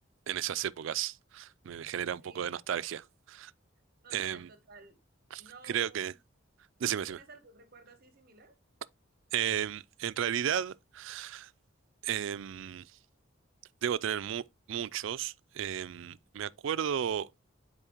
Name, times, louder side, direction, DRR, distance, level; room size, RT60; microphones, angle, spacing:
voice 1, 0.3-3.5 4.1-4.5 5.3-5.4 5.7-6.1 6.8-7.2 9.3-11.5 12.0-12.9 13.8-17.3, right 9 dB, 70° right, 0.3 m, -34 dB
voice 2, 2.2-2.9 4.0-5.0 5.4-6.2 6.9-8.5, right 3 dB, 45° right, 0.8 m, -55 dB
9.9 x 4.1 x 2.9 m
head